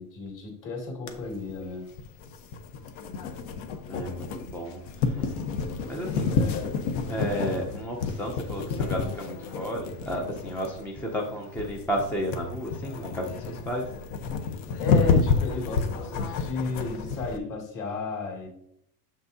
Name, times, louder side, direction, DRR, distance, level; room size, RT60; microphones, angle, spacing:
voice 1, 0.0-1.9 6.3-6.8 14.8-18.5, left 3 dB, 40° left, -1 dB, 2.5 m, -33 dB
sound 1, 1.1-17.4, left 5 dB, 65° left, 1.0 m, -30 dB
voice 2, 3.9-6.3 7.1-13.9, equal, 5° left, 0 dB, 0.4 m, -33 dB
7.1 x 6.1 x 2.7 m, 0.72 s
cardioid pair, 155°, 47 cm